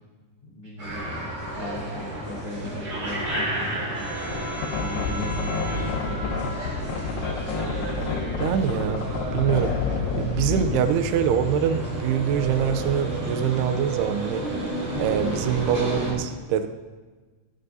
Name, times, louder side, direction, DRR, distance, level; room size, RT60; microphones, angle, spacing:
voice 1, 0.4-1.2 1.5-4.1 4.7-5.9 8.2-8.8 9.3-9.8, left 1 dB, 70° left, -4 dB, 1.3 m, -37 dB
sound 1, 0.8-16.1, right 1 dB, 25° right, 4.2 m, -31 dB
sound 2, 4.3-11.0, left 4 dB, 90° left, 2.8 m, -29 dB
voice 2, 8.4-9.0 9.3-9.7 10.2-14.4 15.0-16.7, right 8 dB, 80° right, 8 dB, 2.5 m, -24 dB
21.5 x 7.6 x 2.7 m, 1.3 s
omnidirectional pair, 4.8 m